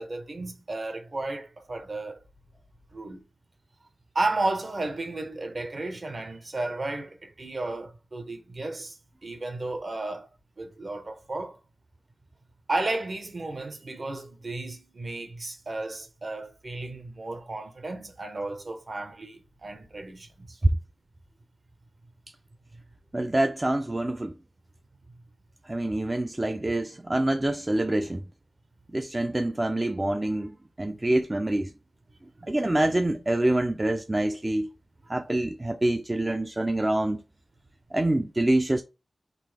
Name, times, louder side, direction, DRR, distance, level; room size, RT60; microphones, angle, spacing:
voice 1, 0.0-2.2 2.9-3.2 4.1-9.0 9.2-10.3 10.6-11.6 12.7-20.6 32.4-32.5, right 2 dB, 50° right, 0.9 m, -33 dB
voice 2, 23.1-24.3 25.7-28.2 28.9-31.7 32.5-34.7 35.1-37.2 37.9-38.8, right 1 dB, 25° right, 0.4 m, -26 dB
4.0 x 2.7 x 3.5 m
wide cardioid pair, 85°, 0 cm